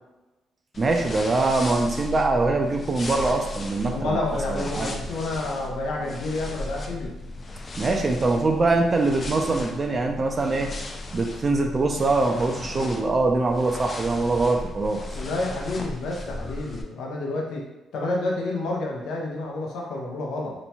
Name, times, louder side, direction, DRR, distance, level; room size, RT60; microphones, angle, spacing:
sound 1, 0.7-16.8, left 2 dB, 35° left, 0.4 m, -36 dB
voice 1, 0.8-4.2 4.5-4.9 7.7-10.7 11.1-15.0, right 3 dB, 35° right, 3 dB, 0.4 m, -23 dB
voice 2, 3.9-7.1 15.1-17.7 17.9-20.5, left 2 dB, 80° left, -1 dB, 0.7 m, -29 dB
2.9 x 2.2 x 4.1 m, 1.1 s
cardioid pair, 90°, 0 cm